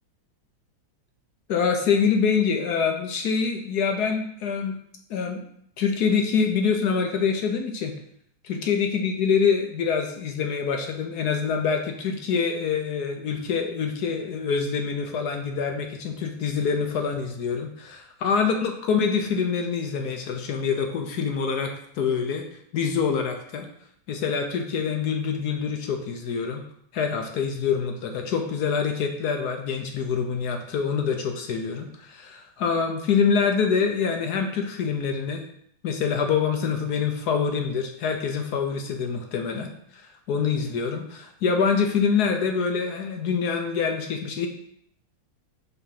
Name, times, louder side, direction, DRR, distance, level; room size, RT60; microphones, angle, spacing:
voice 1, 1.5-4.8 5.1-5.4 5.8-7.9 8.4-22.4 22.7-23.7 24.1-26.6 26.9-35.4 35.8-44.5, left 6 dB, 65° left, 4 dB, 1.0 m, -25 dB
7.5 x 3.5 x 5.8 m, 0.69 s
omnidirectional pair, 2.4 m